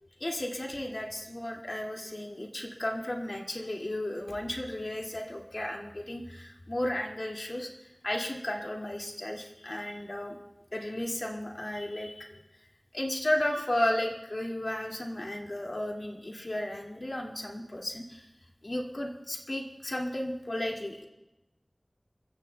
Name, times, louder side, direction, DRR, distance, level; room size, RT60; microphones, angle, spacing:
voice 1, 0.2-10.4 10.7-12.4 12.9-18.3 18.6-21.0, left 1 dB, 60° left, -1 dB, 2.2 m, -34 dB
28.0 x 15.5 x 2.3 m, 0.99 s
wide cardioid pair, 45°, 0 cm